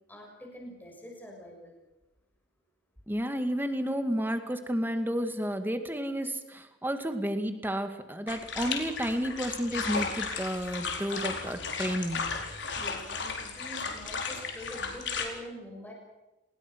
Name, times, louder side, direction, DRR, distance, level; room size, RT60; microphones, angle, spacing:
voice 1, 0.1-1.7 12.7-15.9, equal, 10° left, -1 dB, 6.5 m, -45 dB
voice 2, 3.1-12.3, equal, 10° right, 7 dB, 2.1 m, -31 dB
sound 1, 8.3-15.2, left 5 dB, 75° left, 4.5 m, -35 dB
28.5 x 21.0 x 6.2 m, 1.1 s
head